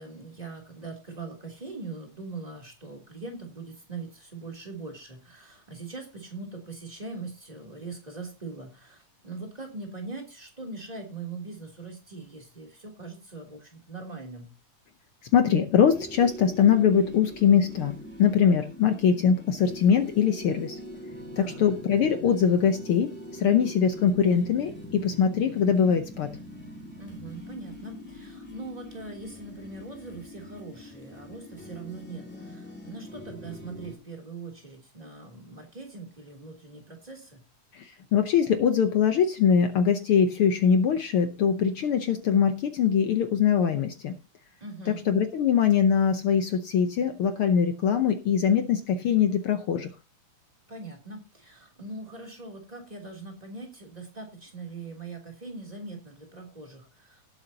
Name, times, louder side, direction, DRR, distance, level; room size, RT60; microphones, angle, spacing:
voice 1, 0.0-14.5 21.3-21.7 27.0-37.4 44.6-45.1 50.7-57.2, right 3 dB, 15° right, 1 dB, 2.9 m, -41 dB
voice 2, 15.3-20.8 21.4-26.4 38.1-44.1 44.9-49.9, left 7 dB, 75° left, 8 dB, 1.3 m, -22 dB
sound 1, 15.9-33.9, equal, 5° left, 1.8 m, -43 dB
18.5 x 7.9 x 2.8 m, 0.30 s
omnidirectional pair, 3.5 m